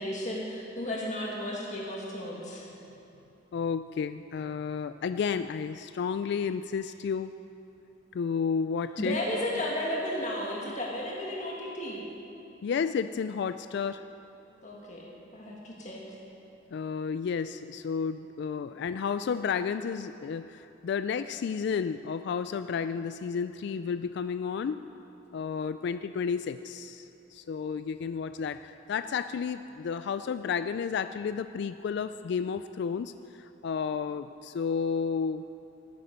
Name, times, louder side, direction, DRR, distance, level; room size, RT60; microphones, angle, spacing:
voice 1, 0.0-2.6 9.0-12.1 14.6-15.1 15.3-16.0, left 1 dB, 40° left, -3 dB, 1.8 m, -33 dB
voice 2, 3.5-7.3 8.1-9.2 12.6-14.0 16.7-24.8 25.3-35.4, left 6 dB, 60° left, 11 dB, 0.3 m, -32 dB
14.5 x 12.5 x 5.2 m, 2.9 s
head